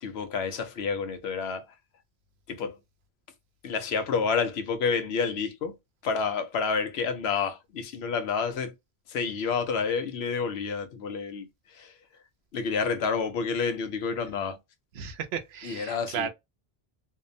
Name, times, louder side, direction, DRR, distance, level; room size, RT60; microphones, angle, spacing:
voice 1, 0.0-1.7 2.5-2.8 3.6-5.8 6.0-8.7 9.1-12.0 12.5-14.6 15.6-16.3, left 5 dB, 85° left, 0.9 m, -29 dB
voice 2, 15.0-16.3, right 8 dB, 80° right, 0.8 m, -34 dB
2.7 x 2.0 x 2.5 m
omnidirectional pair, 1.1 m